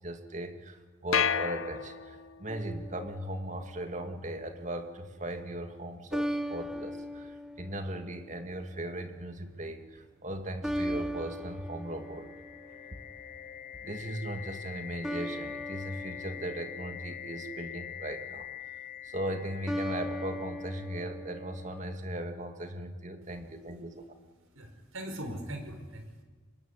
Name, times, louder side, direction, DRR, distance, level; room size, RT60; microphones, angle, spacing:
voice 1, 0.0-12.3 13.8-18.5 19.0-24.1, right 1 dB, 35° right, 6 dB, 2.3 m, -38 dB
sound 1, 1.1-2.5, left 7 dB, 75° left, 0.9 m, -30 dB
sound 2, 2.5-3.8 6.1-8.6 10.6-13.2 15.0-17.5 19.7-22.0, equal, 5° right, 1.1 m, -38 dB
sound 3, 11.6-21.5, left 10 dB, 35° left, 1.0 m, -45 dB
voice 2, 23.6-24.0 24.4-26.2, right 1 dB, 80° right, 6 dB, 5.1 m, -42 dB
25.0 x 21.0 x 9.9 m, 1.4 s
head